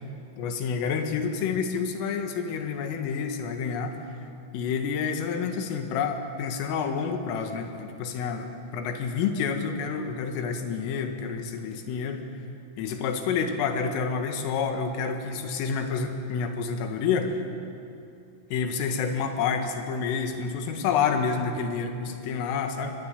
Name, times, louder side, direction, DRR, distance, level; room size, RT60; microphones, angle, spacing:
voice 1, 0.4-3.9 4.5-12.2 12.8-17.4 18.5-23.0, left 6 dB, 75° left, 5 dB, 4.4 m, -28 dB
25.0 x 18.5 x 9.9 m, 2.6 s
omnidirectional pair, 6.0 m